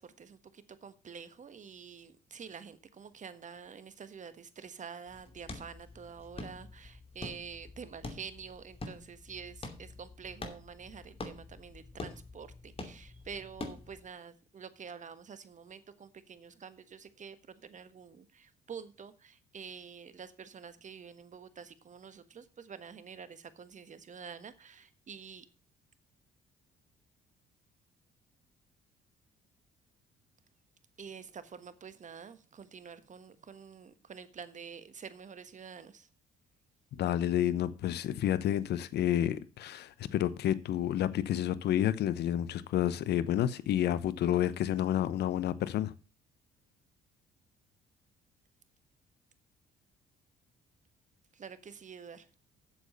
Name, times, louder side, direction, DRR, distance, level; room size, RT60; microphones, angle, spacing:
voice 1, 0.0-25.5 31.0-36.1 51.3-52.3, right 6 dB, 40° right, 13 dB, 1.5 m, -48 dB
sound 1, 5.1-14.1, left 2 dB, 30° left, 2.7 m, -46 dB
voice 2, 36.9-45.9, left 11 dB, 65° left, 16 dB, 0.9 m, -30 dB
8.5 x 7.2 x 6.8 m, 0.34 s
supercardioid pair, 60°, 18 cm